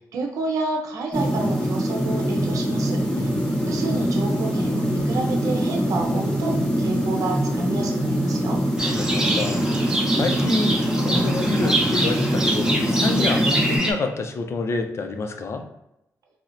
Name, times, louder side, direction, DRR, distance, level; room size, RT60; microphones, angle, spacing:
voice 1, 0.0-3.3 3.6-8.6, right 3 dB, 70° right, 1 dB, 0.6 m, -30 dB
sound 1, 1.1-13.8, equal, 15° left, 1.0 m, -23 dB
Livestock farm animals working animals, 8.8-13.9, right 1 dB, 10° right, 0.6 m, -25 dB
voice 2, 8.9-9.6 10.1-15.7, left 3 dB, 50° left, 5 dB, 0.4 m, -28 dB
4.2 x 2.0 x 2.5 m, 0.87 s
cardioid pair, 110°, 6 cm